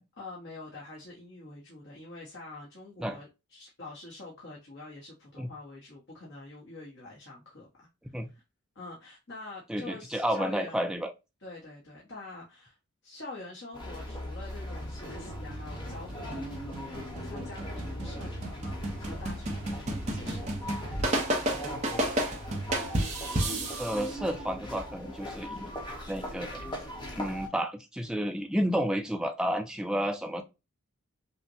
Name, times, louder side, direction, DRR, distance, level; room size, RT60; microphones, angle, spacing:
voice 1, 0.2-7.7 8.1-8.4 8.7-10.8 11.4-12.8 13.0-21.7 29.7-30.1, left 2 dB, 55° left, 1.0 m, -46 dB
voice 2, 9.7-11.1 23.8-25.7 26.1-26.5 27.2-30.4, equal, 5° right, 0.4 m, -31 dB
sound 1, 13.7-27.5, left 1 dB, 20° left, 0.9 m, -39 dB
sound 2, 14.8-24.2, right 1 dB, 30° right, 0.8 m, -33 dB
5.5 x 2.2 x 2.7 m
head